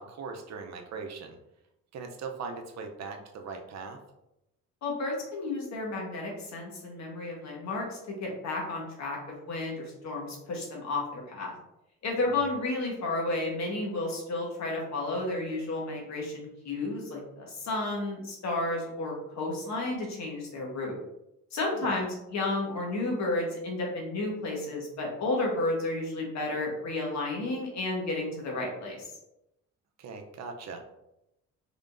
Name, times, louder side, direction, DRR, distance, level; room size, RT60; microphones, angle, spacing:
voice 1, 0.0-1.4 1.9-4.0 12.3-12.5 21.7-22.0 30.0-30.8, right 4 dB, 60° right, 4 dB, 0.7 m, -40 dB
voice 2, 4.8-9.2 9.5-11.5 12.0-21.0 21.5-29.1, left 2 dB, 65° left, -1 dB, 1.3 m, -32 dB
3.7 x 3.5 x 2.5 m, 0.86 s
cardioid pair, 90°, 30 cm